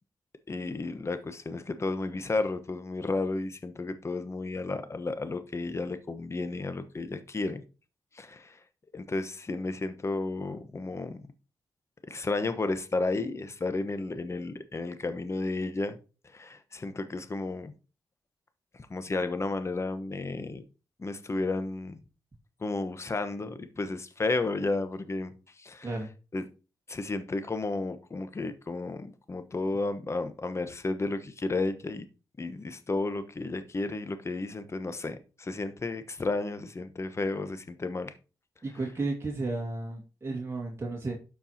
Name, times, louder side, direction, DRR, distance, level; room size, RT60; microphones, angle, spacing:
voice 1, 0.5-7.6 8.1-8.6 8.9-11.3 12.1-16.0 16.2-17.7 18.7-20.6 21.0-22.0 22.6-25.9 26.3-26.4 26.9-32.1 32.4-38.1, left 3 dB, 35° left, 1.0 m, -32 dB
voice 2, 38.6-41.1, right 3 dB, 35° right, 2.0 m, -33 dB
12.5 x 4.6 x 2.8 m
cardioid pair, 60°, 8 cm